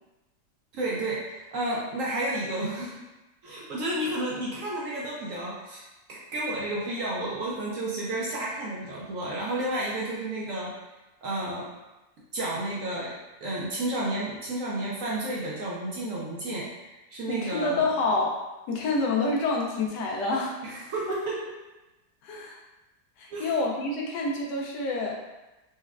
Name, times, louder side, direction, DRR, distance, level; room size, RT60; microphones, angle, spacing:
voice 1, 0.7-3.0 3.4-5.8 6.1-10.7 11.2-11.7 12.3-13.1 13.4-16.7 17.1-17.8 20.6-21.4 23.3-23.5, right 1 dB, 70° right, -5 dB, 0.8 m, -31 dB
voice 2, 17.3-18.3 18.7-20.6 21.1-21.2 22.2-22.6 23.2-25.2, left 3 dB, 90° left, -1 dB, 1.2 m, -27 dB
4.1 x 2.2 x 2.3 m, 1.0 s
omnidirectional pair, 1.8 m